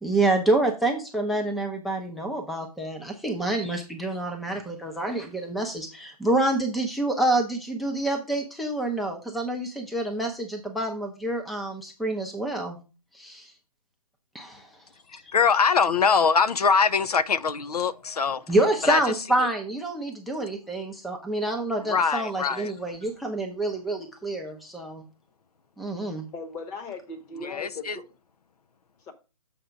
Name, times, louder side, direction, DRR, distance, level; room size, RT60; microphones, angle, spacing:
voice 1, 0.0-12.8 13.1-13.5 14.3-14.7 18.5-25.0 25.8-26.2, right 2 dB, ahead, 0.5 m, -27 dB
voice 2, 15.1-18.5 18.8-19.0 21.8-22.7 27.4-28.0, left 5 dB, 80° left, 0.5 m, -23 dB
voice 3, 26.3-28.0 29.1-29.2, left 3 dB, 15° left, 1.0 m, -38 dB
6.9 x 4.3 x 5.0 m
hypercardioid pair, 145°, 19 cm